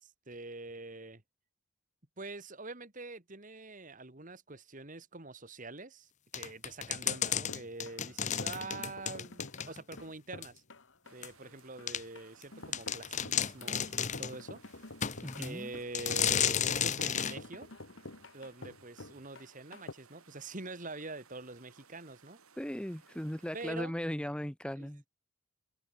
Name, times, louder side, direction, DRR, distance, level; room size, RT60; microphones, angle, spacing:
voice 1, 0.0-1.2 2.2-10.6 11.1-14.6 15.4-17.7 18.3-22.4 23.5-23.9 24.8-25.1, right 3 dB, 35° right, 2.0 m, -45 dB
sound 1, 6.3-10.0 10.4-10.5 11.2-11.3 11.9-12.0 12.4-12.5 12.7-14.4 15.0-15.5 15.9-17.4, left 9 dB, 35° left, 0.9 m, -33 dB
sound 2, 6.9-19.9, left 2 dB, 60° left, 1.8 m, -49 dB
sound 3, 11.0-23.7, right 6 dB, 90° right, 5.2 m, -62 dB
voice 2, 15.2-15.7 22.6-25.0, equal, 5° left, 0.8 m, -37 dB
head